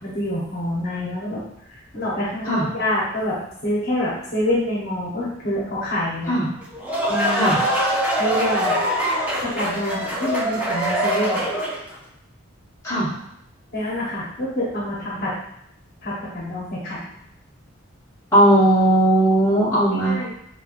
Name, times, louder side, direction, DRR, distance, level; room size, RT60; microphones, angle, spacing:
voice 1, 0.0-1.4 1.7-6.3 7.1-7.5 8.2-8.8 9.4-11.4 13.7-15.3 16.0-17.1 19.9-20.3, left 1 dB, 45° left, -6 dB, 0.9 m, -26 dB
sound 1, 6.6-11.9, equal, 5° right, 0.5 m, -23 dB
voice 2, 12.8-13.2 18.3-20.2, right 1 dB, 15° left, -9 dB, 1.1 m, -17 dB
5.3 x 2.3 x 2.4 m, 0.76 s
head